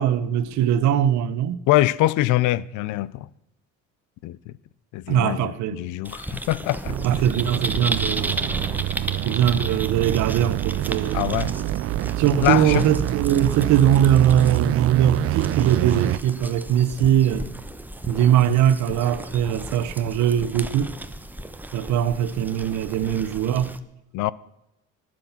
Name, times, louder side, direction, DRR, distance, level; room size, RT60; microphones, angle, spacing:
voice 1, 0.0-1.6 5.1-5.8 7.0-8.4 9.2-11.4 12.2-17.4 18.1-20.9 21.7-23.8, right 10 dB, 70° right, 1.1 m, -21 dB
voice 2, 1.7-3.3 4.2-4.5 4.9-7.0 11.1-11.5 12.4-12.8 24.1-24.3, left 16 dB, 75° left, 0.7 m, -23 dB
sound 1, 6.0-23.8, right 1 dB, 5° right, 0.9 m, -34 dB
sound 2, 6.9-16.2, right 14 dB, 50° right, 0.5 m, -26 dB
20.0 x 7.8 x 5.9 m
cardioid pair, 110°, 30 cm